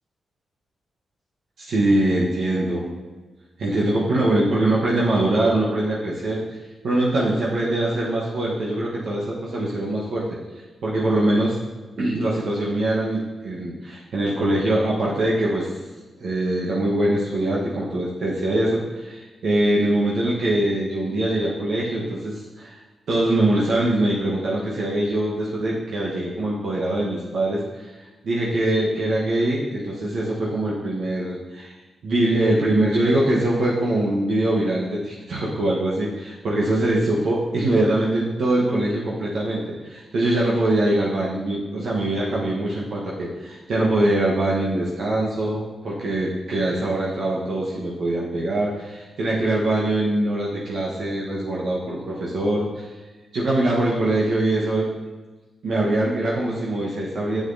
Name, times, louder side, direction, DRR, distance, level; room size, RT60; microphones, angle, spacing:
voice 1, 1.6-2.9 3.6-6.6 6.8-10.2 10.8-11.6 12.0-15.7 16.2-22.7 23.1-27.9 28.2-31.7 32.0-52.9 53.3-54.9 55.6-57.4, right 1 dB, 75° right, -5 dB, 1.1 m, -23 dB
7.7 x 6.2 x 2.7 m, 1.3 s
supercardioid pair, 55°, 0 cm